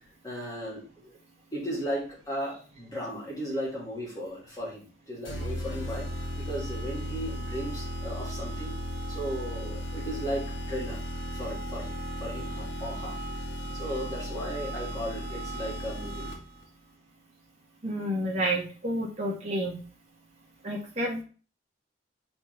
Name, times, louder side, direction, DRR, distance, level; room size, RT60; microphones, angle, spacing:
voice 1, 0.2-1.2 1.5-6.1 6.4-8.7 9.1-11.1 11.3-13.2 13.6-16.3, equal, 20° left, -5 dB, 2.7 m, -36 dB
sound 1, 5.3-16.6, equal, 85° left, 1.7 m, -35 dB
voice 2, 17.8-19.8 20.6-21.2, right 1 dB, 35° right, -2 dB, 1.8 m, -30 dB
4.3 x 4.3 x 5.5 m, 0.37 s
head